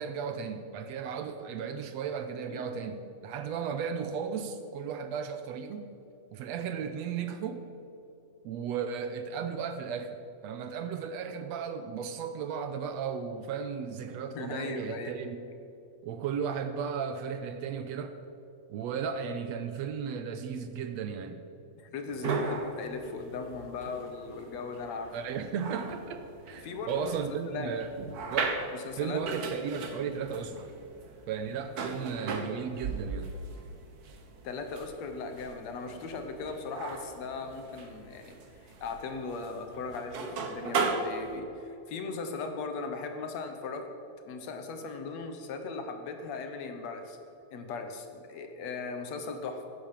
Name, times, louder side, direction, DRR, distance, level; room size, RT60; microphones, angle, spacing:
voice 1, 0.0-5.9 6.3-7.7 8.4-15.5 16.0-18.1 18.7-21.4 25.1-27.9 28.3-28.6 29.0-30.7 31.3-33.3, right 6 dB, 75° right, 8 dB, 1.8 m, -35 dB
voice 2, 14.4-15.2 21.7-25.1 26.6-27.2 27.5-27.7 28.7-29.2 34.4-43.9 44.3-47.2 47.5-49.7, left 4 dB, 65° left, 6 dB, 2.3 m, -38 dB
sound 1, 22.1-41.4, right 4 dB, 55° right, 1.0 m, -38 dB
16.0 x 8.8 x 7.3 m, 2.7 s
omnidirectional pair, 3.4 m